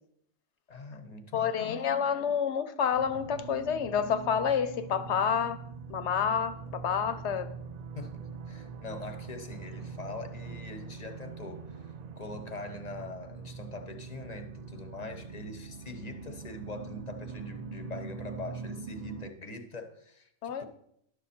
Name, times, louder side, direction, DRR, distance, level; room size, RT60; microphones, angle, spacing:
voice 1, 0.7-1.9 7.9-8.1 8.4-20.3 20.6-20.7, left 2 dB, 35° left, 0.8 m, -43 dB
voice 2, 1.3-5.6 5.9-7.5 20.4-20.7, left 7 dB, 70° left, 1.0 m, -29 dB
sound 1, 2.9-19.3, right 5 dB, 65° right, 0.4 m, -43 dB
11.5 x 6.5 x 4.2 m
omnidirectional pair, 1.3 m